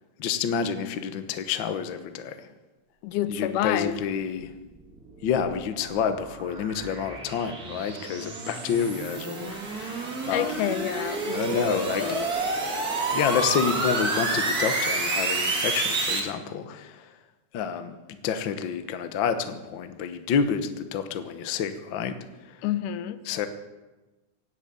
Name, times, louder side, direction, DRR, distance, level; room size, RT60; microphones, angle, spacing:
voice 1, 0.2-2.4 3.3-4.5 5.2-10.8 11.3-12.7 13.1-17.1 17.5-22.2 22.5-22.6 23.3-23.5, left 7 dB, 65° left, 9 dB, 1.2 m, -29 dB
voice 2, 3.0-4.0 10.3-12.3 22.6-23.2, left 11 dB, 85° left, 13 dB, 2.3 m, -29 dB
sound 1, 4.9-16.2, right 3 dB, 35° right, 2.2 m, -29 dB
17.0 x 8.0 x 8.8 m, 1.1 s
omnidirectional pair, 3.6 m